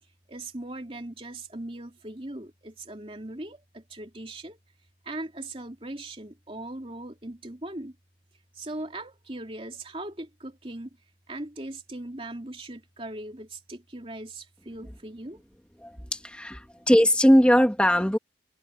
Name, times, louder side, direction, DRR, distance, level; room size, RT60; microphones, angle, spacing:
voice 1, 0.3-4.6 5.0-7.9 8.6-10.9 11.3-15.4, right 1 dB, 30° right, 2.9 m, -39 dB
voice 2, 15.8-18.2, equal, 5° left, 1.7 m, -20 dB
head